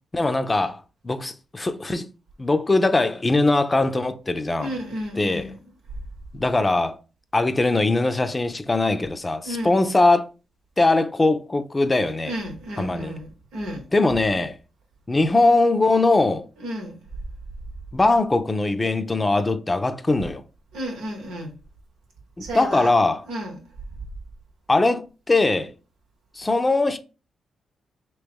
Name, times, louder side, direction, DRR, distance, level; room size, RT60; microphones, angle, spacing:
voice 1, 0.1-2.1 2.4-4.7 5.2-5.5 6.3-7.0 7.3-10.3 10.8-12.3 12.8-13.2 13.9-14.6 15.1-16.5 17.9-20.4 22.4-23.2 24.7-25.7 26.3-27.0, left 2 dB, 30° left, 0.5 m, -21 dB
voice 2, 4.6-5.6 9.4-9.8 12.2-13.9 16.6-17.0 20.7-21.5 22.4-22.9 23.3-23.6, equal, 80° right, 1.0 m, -32 dB
3.0 x 3.0 x 3.5 m
hypercardioid pair, 45°, 0 cm